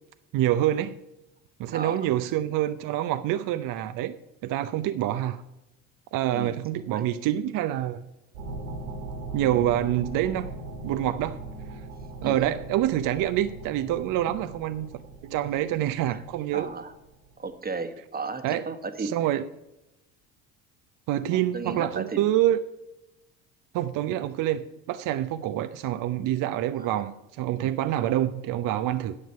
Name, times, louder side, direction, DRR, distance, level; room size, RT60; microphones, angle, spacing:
voice 1, 0.3-1.0 1.6-4.1 4.4-5.4 6.1-8.1 9.3-10.5 10.8-11.4 12.2-14.9 15.2-16.7 18.4-18.6 19.0-19.4 21.1-22.6 23.7-29.1, right 12 dB, 55° right, 0.6 m, -26 dB
voice 2, 1.7-2.1 6.3-6.6 6.9-7.1 12.2-12.5 14.3-14.4 16.1-16.2 16.5-16.9 17.4-19.3 21.3-22.3 26.7-27.0, right 4 dB, 25° right, 1.3 m, -35 dB
sound 1, 8.3-17.5, right 2 dB, 85° right, 2.9 m, -40 dB
9.7 x 7.4 x 5.6 m
hypercardioid pair, 65°, 39 cm